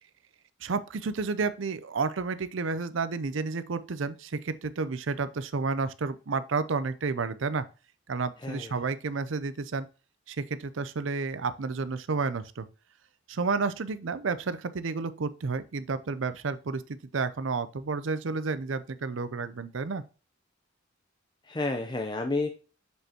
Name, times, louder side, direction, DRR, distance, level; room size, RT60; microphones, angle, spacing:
voice 1, 0.6-7.7 8.1-9.9 10.3-12.7 13.3-20.0, right 4 dB, 75° right, 0.6 m, -31 dB
voice 2, 8.4-8.7 21.4-22.5, left 2 dB, 25° left, 0.6 m, -30 dB
6.4 x 5.3 x 2.9 m
head